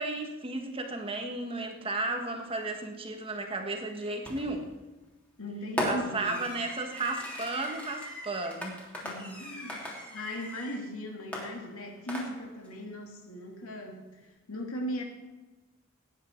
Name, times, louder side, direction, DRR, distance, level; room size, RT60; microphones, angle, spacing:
voice 1, 0.0-4.7 5.8-8.7, right 2 dB, 25° right, 4 dB, 1.5 m, -34 dB
Fireworks, 4.2-4.7 5.8-10.8 11.3-12.7, equal, 5° left, 3.1 m, -38 dB
voice 2, 5.4-6.4 9.0-14.2 14.5-15.0, equal, 85° left, 1 dB, 2.6 m, -38 dB
18.0 x 9.8 x 4.6 m, 1.2 s
head